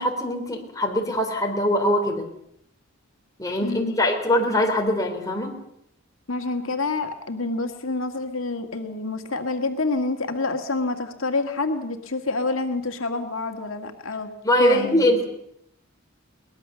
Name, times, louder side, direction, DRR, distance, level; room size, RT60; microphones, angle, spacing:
voice 1, 0.0-2.3 3.4-5.5 14.4-15.3, left 1 dB, 15° left, 2 dB, 3.8 m, -22 dB
voice 2, 3.6-4.0 6.3-14.3 14.6-15.1, left 3 dB, 85° left, 5 dB, 1.9 m, -27 dB
22.5 x 19.5 x 6.9 m, 0.75 s
head